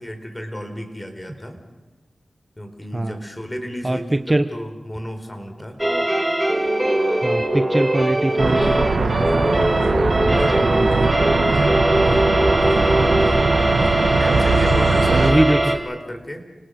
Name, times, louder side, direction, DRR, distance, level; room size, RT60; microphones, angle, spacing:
voice 1, 0.0-1.6 2.6-5.8 14.2-16.4, equal, 20° left, 6 dB, 4.4 m, -33 dB
voice 2, 3.8-4.5 7.1-9.4 10.1-11.4 15.1-15.7, right 1 dB, 25° right, 10 dB, 1.0 m, -23 dB
sound 1, 5.8-15.8, right 1 dB, 10° right, 3.1 m, -20 dB
sound 2, 8.4-15.3, right 3 dB, 90° right, 2.0 m, -21 dB
30.0 x 18.5 x 6.5 m, 1.1 s
cardioid pair, 45°, 0 cm